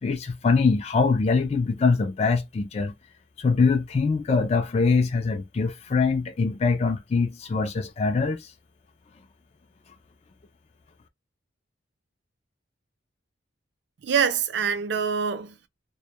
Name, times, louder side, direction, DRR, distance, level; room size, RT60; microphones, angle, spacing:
voice 1, 0.0-2.9 3.4-8.5, left 4 dB, 30° left, 0.3 m, -23 dB
voice 2, 14.0-15.7, right 7 dB, 60° right, 0.4 m, -25 dB
2.1 x 2.1 x 2.7 m
head